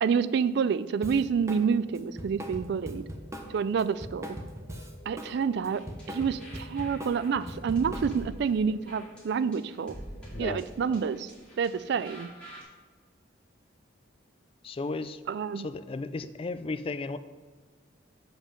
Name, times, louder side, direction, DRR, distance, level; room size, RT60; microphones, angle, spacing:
voice 1, 0.0-3.0 3.5-4.4 5.1-5.8 6.1-9.9 10.4-11.3 11.6-12.3 15.3-15.7, right 6 dB, 55° right, 15 dB, 0.3 m, -28 dB
Drum kit, 1.0-1.6 1.9-5.3 5.6-8.4, equal, 15° right, 0.7 m, -40 dB
sound 1, 1.2-10.7, left 1 dB, 70° left, 1.8 m, -54 dB
sound 2, 5.7-12.6, equal, 5° left, 2.4 m, -46 dB
voice 2, 10.3-11.0 14.6-15.2 15.6-17.2, left 3 dB, 30° left, 12 dB, 0.3 m, -35 dB
7.2 x 5.5 x 5.3 m, 1.4 s
head